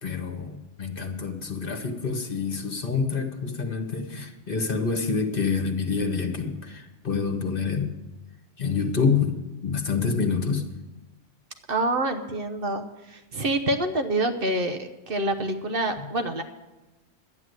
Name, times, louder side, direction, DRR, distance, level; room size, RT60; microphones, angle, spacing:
voice 1, 0.0-7.9 8.6-10.7, left 5 dB, 50° left, 5 dB, 1.4 m, -27 dB
voice 2, 11.7-16.4, right 1 dB, 50° right, 6 dB, 1.1 m, -27 dB
12.0 x 9.6 x 8.0 m, 1.1 s
omnidirectional pair, 1.2 m